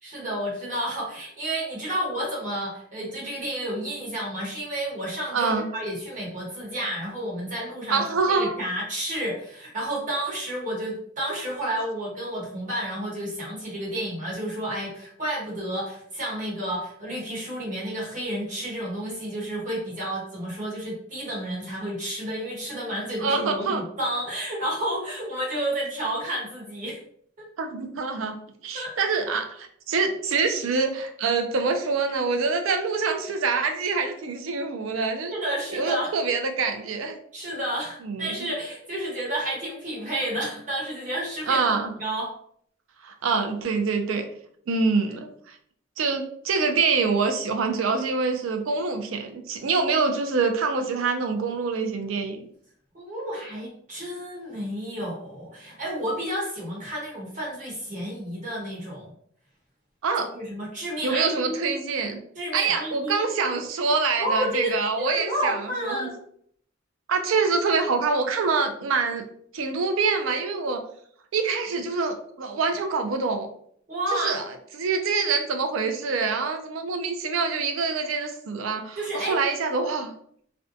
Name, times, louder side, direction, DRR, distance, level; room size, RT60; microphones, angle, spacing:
voice 1, 0.0-27.0 27.4-27.5 28.7-28.9 34.9-36.1 37.3-41.6 42.0-42.3 52.9-59.1 60.3-61.7 62.3-63.3 64.2-66.2 73.9-74.4 79.0-79.4, right 1 dB, 40° right, -4 dB, 1.0 m, -31 dB
voice 2, 5.3-5.7 7.9-8.5 11.3-11.4 23.2-23.8 27.6-28.4 28.6-37.2 38.0-38.3 41.5-41.9 43.0-44.2 44.7-45.6 46.0-52.4 60.0-60.3 61.0-62.2 62.5-65.6 65.8-66.1 67.1-69.2 69.5-70.8 71.3-73.5 74.1-74.4 74.7-80.1, right 4 dB, 85° right, 6 dB, 0.4 m, -25 dB
2.6 x 2.1 x 2.5 m, 0.64 s
head